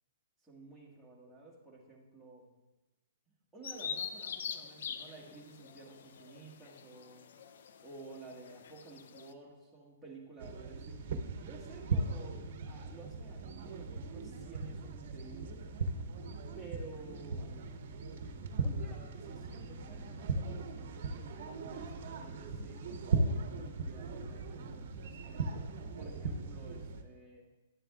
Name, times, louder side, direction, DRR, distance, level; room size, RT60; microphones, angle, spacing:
voice 1, 0.4-2.5 3.5-7.3 7.8-11.0 11.4-15.6 16.5-17.5 18.6-25.5 25.9-27.4, right 3 dB, ahead, -6 dB, 1.7 m, -53 dB
Bird vocalization bird call bird song, 3.6-9.3, left 7 dB, 65° left, 0.5 m, -44 dB
sound 1, 10.4-27.0, right 3 dB, 60° right, 0.8 m, -38 dB
11.0 x 7.4 x 2.4 m, 1.1 s
hypercardioid pair, 140°, 0 cm